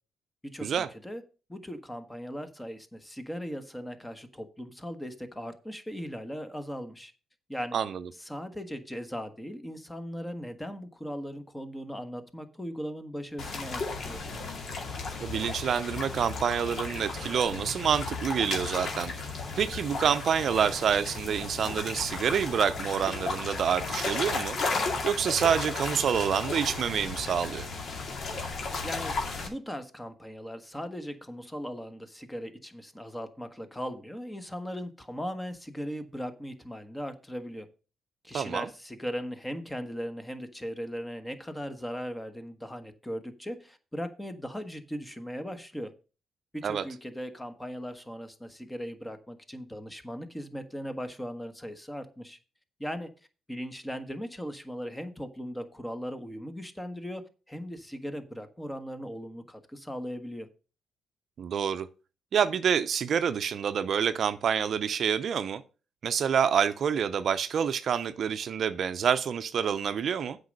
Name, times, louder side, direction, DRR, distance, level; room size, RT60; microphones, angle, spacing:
voice 1, 0.4-1.2 1.5-7.1 7.5-7.8 8.2-14.2 28.8-37.7 38.2-45.9 46.5-52.4 52.8-53.1 53.5-60.5, equal, 10° left, 1.3 m, -38 dB
sound 1, 13.4-29.5, left 3 dB, 55° left, 2.4 m, -34 dB
voice 2, 15.2-19.1 19.6-24.6 25.0-27.7 38.3-38.7 46.6-46.8 61.4-61.9 62.3-65.6 66.0-70.4, right 8 dB, 60° right, 0.6 m, -27 dB
8.1 x 5.3 x 6.5 m
cardioid pair, 90°, 0 cm